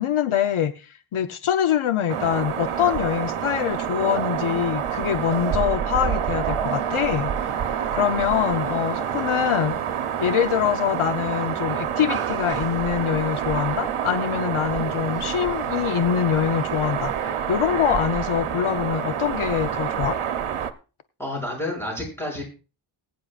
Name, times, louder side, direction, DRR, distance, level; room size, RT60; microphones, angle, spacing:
voice 1, 0.0-7.5 7.9-9.8 10.2-20.2, left 9 dB, 80° left, 10 dB, 0.8 m, -24 dB
sound 1, 2.1-20.7, right 8 dB, 85° right, 0.9 m, -27 dB
voice 2, 21.2-22.4, left 1 dB, 5° left, -1 dB, 6.2 m, -29 dB
20.5 x 9.5 x 2.4 m, 0.34 s
wide cardioid pair, 150°, 49 cm